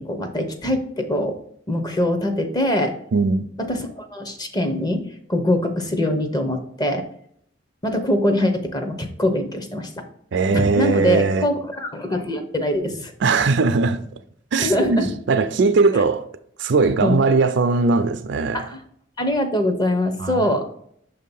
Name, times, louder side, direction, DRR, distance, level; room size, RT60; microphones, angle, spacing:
voice 1, 0.0-1.4 1.7-2.9 3.6-5.0 5.3-7.0 7.8-9.9 10.5-13.1 14.6-15.1 17.0-17.2 18.5-18.8 19.2-20.8, left 1 dB, 20° left, 0.7 m, -23 dB
voice 2, 3.1-3.5 10.3-11.5 13.2-14.0 14.5-16.3 16.6-18.7 20.2-20.4, right 4 dB, 65° right, 0.4 m, -19 dB
6.5 x 2.8 x 5.3 m
head